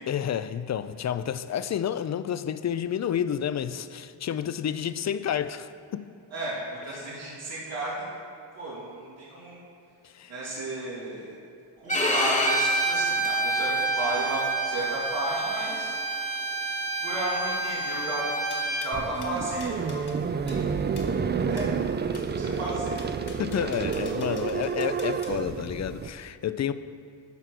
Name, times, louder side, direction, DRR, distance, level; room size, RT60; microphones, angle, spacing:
voice 1, 0.1-6.1 10.0-10.3 23.4-26.7, left 9 dB, 40° left, 0.4 m, -30 dB
voice 2, 6.3-8.2 8.5-9.6 10.3-11.4 11.8-15.9 17.0-20.8 21.5-23.0, right 1 dB, 85° right, 2.6 m, -34 dB
Bowed string instrument, 11.9-18.9, right 2 dB, 15° left, 1.1 m, -27 dB
sound 1, 12.5-13.4 18.5-20.2 20.5-20.6 21.0-21.1 21.6-21.7 22.1-22.3 23.0-25.4, left 4 dB, 60° left, 1.8 m, -47 dB
sound 2, 18.9-26.1, right 6 dB, 25° right, 0.3 m, -29 dB
12.5 x 4.6 x 6.0 m
cardioid pair, 90°, 44 cm